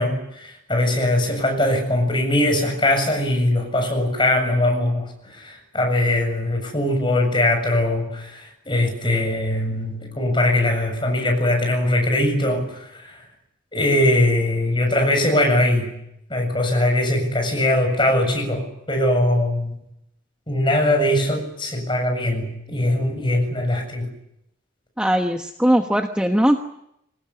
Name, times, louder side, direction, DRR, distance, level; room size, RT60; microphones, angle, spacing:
voice 1, 0.0-13.2 13.7-15.9 16.3-19.8 20.5-24.1, left 1 dB, 25° left, 4 dB, 7.4 m, -21 dB
voice 2, 25.0-26.6, equal, 5° right, 3 dB, 1.2 m, -19 dB
24.5 x 19.5 x 10.0 m, 0.81 s
head